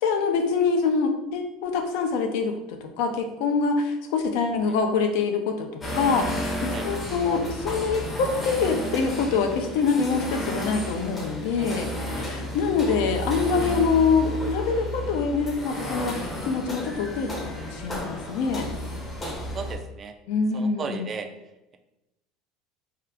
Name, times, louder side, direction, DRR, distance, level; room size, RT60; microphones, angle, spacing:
voice 1, 0.0-11.9 12.1-18.7 20.3-21.1, left 5 dB, 70° left, 5 dB, 0.5 m, -25 dB
sound 1, 5.8-19.8, equal, 20° left, 0.7 m, -32 dB
voice 2, 19.2-20.1 20.5-21.3, right 5 dB, 30° right, 6 dB, 0.3 m, -35 dB
2.7 x 2.4 x 3.4 m, 0.94 s
supercardioid pair, 135°, 0 cm